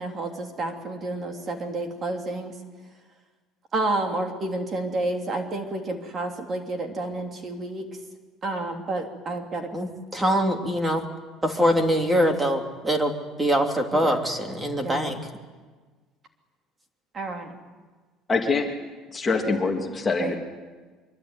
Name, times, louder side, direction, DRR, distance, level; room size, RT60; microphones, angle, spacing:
voice 1, 0.0-2.6 3.7-7.9 8.4-9.7 13.9-14.2 14.8-15.1 17.1-17.5 20.2-20.4, right 2 dB, 30° right, 4 dB, 3.2 m, -30 dB
voice 2, 9.7-11.0 11.4-15.2, equal, 10° right, 5 dB, 3.0 m, -23 dB
voice 3, 18.3-18.7 19.1-20.4, left 4 dB, 20° left, 2 dB, 2.7 m, -24 dB
24.5 x 23.5 x 9.6 m, 1.4 s
cardioid pair, 140°, 0 cm